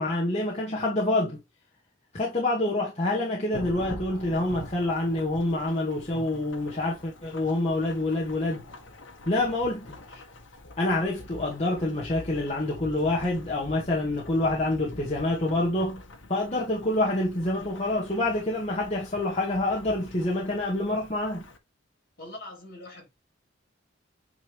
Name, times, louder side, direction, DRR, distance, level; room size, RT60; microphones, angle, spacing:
voice 1, 0.0-1.4 2.1-8.6 9.3-10.2 10.8-16.0 16.3-21.4, left 2 dB, 35° left, 1.9 m, -27 dB
Thunderstorm / Rain, 3.5-21.6, left 2 dB, 70° left, 1.6 m, -45 dB
voice 2, 22.2-23.1, left 1 dB, 55° left, 4.0 m, -42 dB
9.3 x 3.6 x 3.4 m
head